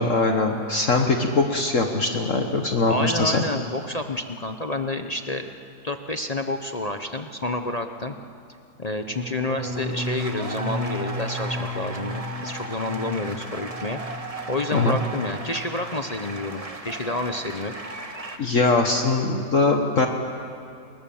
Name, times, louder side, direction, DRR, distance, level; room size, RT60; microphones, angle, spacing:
voice 1, 0.0-3.4 14.7-15.0 18.4-20.1, left 3 dB, 50° left, 3 dB, 1.6 m, -21 dB
voice 2, 2.8-5.5 5.8-8.2 8.8-14.0 14.5-17.7, left 2 dB, 35° left, 6 dB, 0.7 m, -29 dB
sound 1, 9.0-14.9 15.2-15.7 16.0-16.4, equal, 40° right, 5.2 m, -35 dB
sound 2, 9.5-18.4, right 2 dB, 20° right, 1.5 m, -36 dB
29.5 x 21.5 x 7.1 m, 2.5 s
omnidirectional pair, 1.8 m